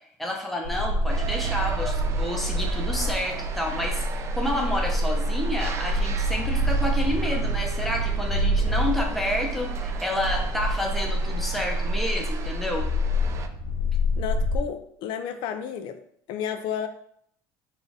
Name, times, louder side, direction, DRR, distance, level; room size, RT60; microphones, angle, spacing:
voice 1, 0.2-12.9, left 1 dB, ahead, 0 dB, 0.7 m, -30 dB
sound 1, 0.6-14.6, right 1 dB, 80° left, 0.9 m, -26 dB
sound 2, 1.1-13.5, right 5 dB, 35° right, 0.4 m, -39 dB
voice 2, 14.2-16.0 16.3-16.9, left 8 dB, 65° left, 8 dB, 0.4 m, -31 dB
4.2 x 2.5 x 4.7 m, 0.68 s
cardioid pair, 140°, 9 cm